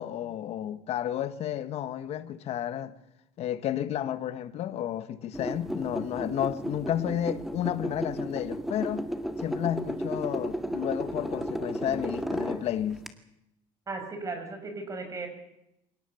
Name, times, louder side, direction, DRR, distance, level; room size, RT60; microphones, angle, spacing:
voice 1, 0.0-2.9 3.4-9.1 9.4-13.0, left 11 dB, 55° left, 1.7 m, -32 dB
sound 1, 5.3-13.1, equal, ahead, 1.9 m, -34 dB
voice 2, 13.9-15.3, right 3 dB, 25° right, 6.6 m, -36 dB
25.5 x 18.5 x 7.2 m
cardioid pair, 130°, 13 cm